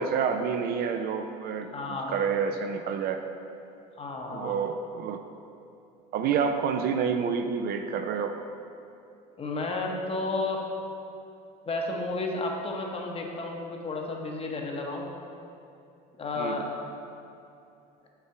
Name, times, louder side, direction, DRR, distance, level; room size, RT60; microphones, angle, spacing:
voice 1, 0.0-3.2 4.3-5.2 6.1-8.4 16.4-16.7, right 6 dB, 50° right, 6 dB, 0.4 m, -28 dB
voice 2, 1.7-2.1 4.0-4.6 9.4-10.6 11.7-15.1 16.2-16.7, left 2 dB, 30° left, 1 dB, 0.9 m, -32 dB
5.7 x 3.4 x 5.7 m, 2.7 s
supercardioid pair, 95°, 20 cm